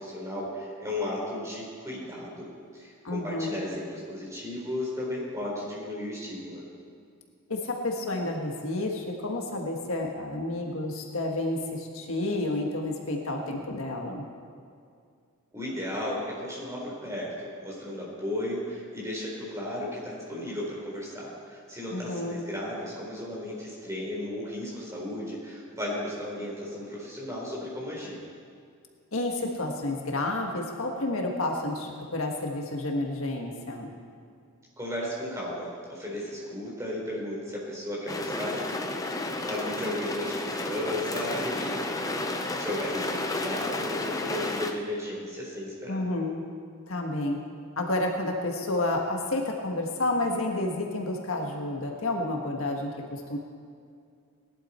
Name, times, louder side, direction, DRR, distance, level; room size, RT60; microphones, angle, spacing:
voice 1, 0.0-6.7 15.5-28.2 34.8-46.0, left 1 dB, 15° right, -5 dB, 4.0 m, -35 dB
voice 2, 3.0-3.6 7.5-14.3 21.9-22.4 29.1-33.9 45.9-46.4 46.9-47.4 47.8-53.4, left 2 dB, 70° left, 1 dB, 1.5 m, -30 dB
sound 1, 38.1-44.7, left 2 dB, 15° left, 0.7 m, -32 dB
18.5 x 11.5 x 4.4 m, 2.3 s
head